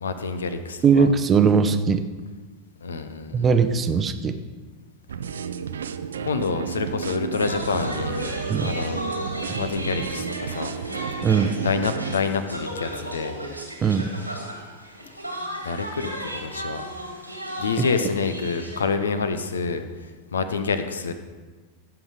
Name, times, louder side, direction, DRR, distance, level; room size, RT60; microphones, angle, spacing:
voice 1, 0.0-1.1 2.8-3.5 6.2-9.0 9.6-10.7 11.6-13.4 15.6-16.8 17.6-19.8 20.3-21.1, left 4 dB, 70° left, 10 dB, 0.8 m, -27 dB
voice 2, 0.8-2.0 3.3-4.4 8.5-8.7 11.2-11.6 13.8-14.1 17.8-17.9, right 6 dB, 20° right, 9 dB, 0.6 m, -19 dB
sound 1, 5.1-12.2, right 7 dB, 65° right, 0.5 m, -32 dB
sound 2, 7.4-18.8, equal, 90° right, 1.9 m, -35 dB
16.0 x 5.9 x 4.9 m, 1.4 s
figure-of-eight pair, 90°, 0 cm